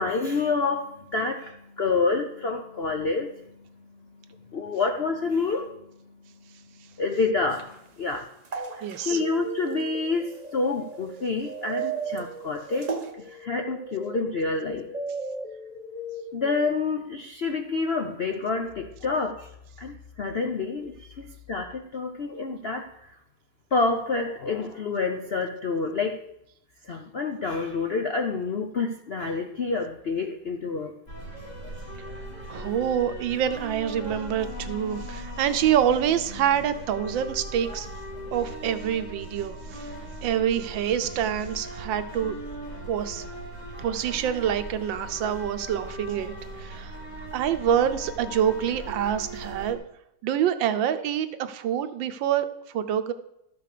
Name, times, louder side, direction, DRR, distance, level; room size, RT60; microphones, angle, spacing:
voice 1, 0.0-8.3 8.7-14.9 16.3-19.5 19.8-23.1 23.7-26.2 26.8-30.9, left 4 dB, 60° left, 4 dB, 0.6 m, -28 dB
sound 1, 7.5-13.1, right 4 dB, 35° right, 0.6 m, -39 dB
sound 2, 8.5-16.8, right 4 dB, 20° right, 1.2 m, -37 dB
voice 2, 8.8-9.2 32.5-37.9 38.3-39.9 40.2-42.4 42.9-43.2 43.8-47.0 47.3-49.8 50.2-52.5 52.7-53.1, right 9 dB, 80° right, 10 dB, 1.5 m, -26 dB
sound 3, 31.1-49.7, equal, 25° left, 1.7 m, -39 dB
13.0 x 5.9 x 6.7 m, 0.81 s
omnidirectional pair, 2.0 m